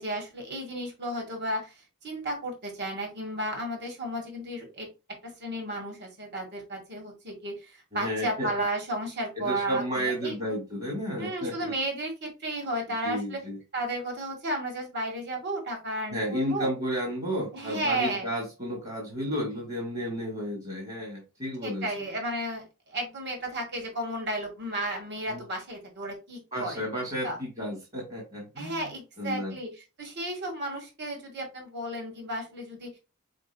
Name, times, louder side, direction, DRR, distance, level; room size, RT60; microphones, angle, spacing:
voice 1, 0.0-1.7 2.0-4.9 5.2-10.5 11.2-13.4 13.7-16.7 17.5-18.3 21.6-26.8 27.2-27.4 28.6-29.7 30.0-33.0, right 1 dB, 55° right, 2 dB, 1.8 m, -33 dB
voice 2, 7.9-8.5 9.4-11.7 13.0-13.6 16.1-22.1 25.3-25.4 26.5-28.8 29.2-29.6, equal, 30° right, 0 dB, 1.7 m, -32 dB
5.1 x 4.5 x 2.2 m, 0.28 s
head